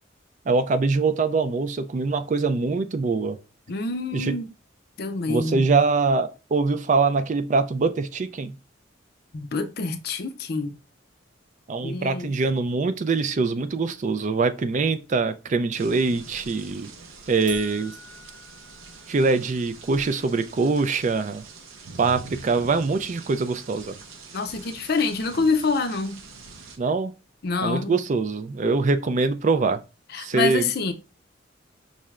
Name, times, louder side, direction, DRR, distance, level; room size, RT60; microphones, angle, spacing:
voice 1, 0.5-3.4 4.1-4.4 5.3-8.6 11.7-16.9 17.3-17.9 19.1-21.4 22.0-24.0 26.8-27.1 27.6-29.8 30.2-30.7, right 4 dB, 40° right, 0.3 m, -23 dB
voice 2, 3.7-4.5 5.0-5.6 9.3-10.7 11.8-12.3 24.3-26.2 27.4-28.0 30.1-30.9, left 4 dB, 50° left, 0.5 m, -26 dB
sound 1, 15.7-26.8, right 4 dB, 90° right, 0.8 m, -44 dB
sound 2, 17.5-19.6, right 2 dB, 60° right, 1.0 m, -44 dB
5.5 x 3.2 x 2.4 m
head